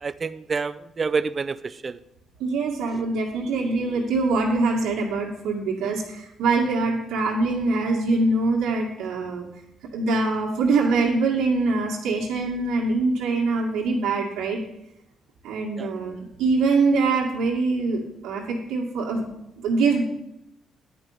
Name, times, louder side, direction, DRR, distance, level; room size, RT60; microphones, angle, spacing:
voice 1, 0.0-2.0 15.8-15.9, right 5 dB, 35° right, 14 dB, 0.4 m, -28 dB
voice 2, 2.4-9.5 9.9-14.6 15.4-19.2 19.6-20.0, right 3 dB, 85° right, -2 dB, 2.0 m, -23 dB
10.0 x 5.4 x 7.2 m, 0.82 s
cardioid pair, 90°, 0 cm